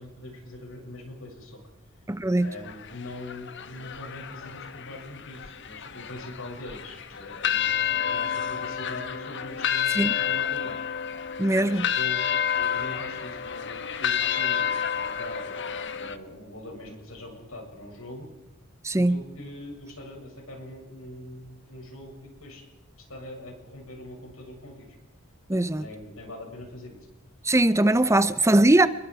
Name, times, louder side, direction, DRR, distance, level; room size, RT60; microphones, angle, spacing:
voice 1, 0.0-1.6 2.4-10.8 11.6-12.2 12.5-14.7 15.0-18.3 19.0-22.6 23.0-24.9 25.5-27.1 28.0-28.2, left 1 dB, 85° left, 7.4 m, -42 dB
voice 2, 2.1-2.5 9.9-10.1 11.4-11.9 18.8-19.2 25.5-25.8 27.4-28.9, right 1 dB, 15° right, 0.7 m, -20 dB
sound 1, 2.4-16.2, left 8 dB, 60° left, 1.3 m, -30 dB
28.0 x 22.5 x 4.9 m
head